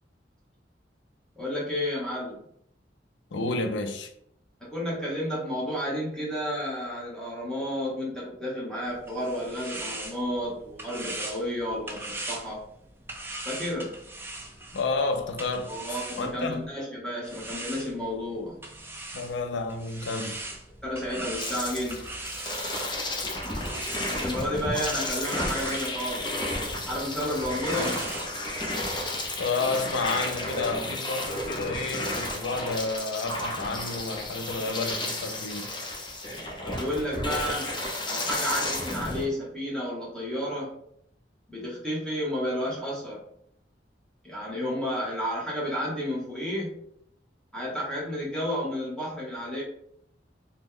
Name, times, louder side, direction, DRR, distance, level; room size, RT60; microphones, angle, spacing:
voice 1, 1.4-2.4 4.6-12.6 13.4-13.9 15.7-18.6 20.8-22.0 24.1-26.6 26.9-28.0 36.6-37.7 38.0-40.7 41.5-43.2 44.2-46.8 47.5-49.6, equal, 5° left, 0.9 m, -31 dB
voice 2, 3.3-4.1 14.7-15.7 16.2-16.7 19.1-20.4 29.4-35.7, left 3 dB, 90° left, 0.4 m, -30 dB
sound 1, 8.8-16.7 17.2-28.3, right 2 dB, 15° right, 0.4 m, -40 dB
sound 2, 21.4-39.2, left 1 dB, 25° left, 0.6 m, -32 dB
3.0 x 2.1 x 3.6 m
head